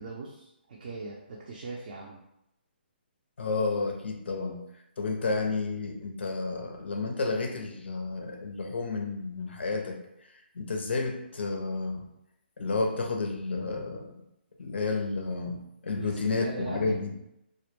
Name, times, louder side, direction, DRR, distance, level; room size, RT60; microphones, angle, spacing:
voice 1, 0.0-2.2 16.0-17.0, right 3 dB, 50° right, -3 dB, 0.4 m, -39 dB
voice 2, 3.4-4.6 5.0-10.0 10.5-12.1 12.6-14.1 14.6-17.2, left 3 dB, 80° left, 3 dB, 0.5 m, -31 dB
2.1 x 2.1 x 2.9 m, 0.82 s
hypercardioid pair, 160°, 6 cm